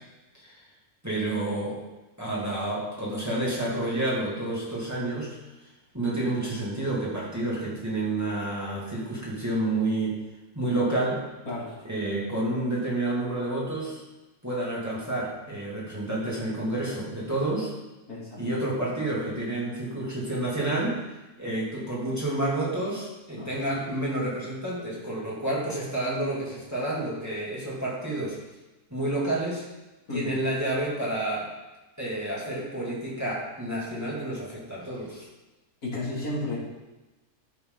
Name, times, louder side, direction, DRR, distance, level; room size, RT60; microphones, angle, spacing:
voice 1, 1.0-1.8 2.2-5.4 5.9-10.2 10.5-11.2 11.8-14.0 14.4-17.7 18.4-21.0 21.4-28.4 28.9-29.7 30.1-31.5 32.0-35.3, right 1 dB, 10° right, -6 dB, 2.7 m, -29 dB
voice 2, 18.1-18.6 23.3-23.5 30.1-30.4 35.8-36.6, left 2 dB, 70° left, -6 dB, 3.5 m, -33 dB
13.5 x 6.7 x 4.0 m, 1.1 s
omnidirectional pair, 1.6 m